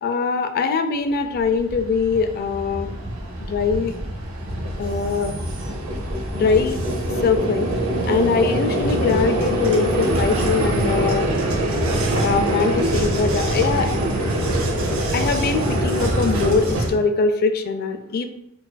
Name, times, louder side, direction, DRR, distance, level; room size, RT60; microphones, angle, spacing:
voice 1, 0.0-2.9 3.5-3.9 4.8-5.3 6.3-6.8 7.2-7.7 8.1-11.3 12.2-13.9 15.1-18.3, left 4 dB, 45° left, 8 dB, 0.3 m, -22 dB
Vehicle, 1.3-16.9, right 1 dB, 65° right, 0.6 m, -23 dB
4.6 x 2.5 x 2.2 m, 0.80 s
head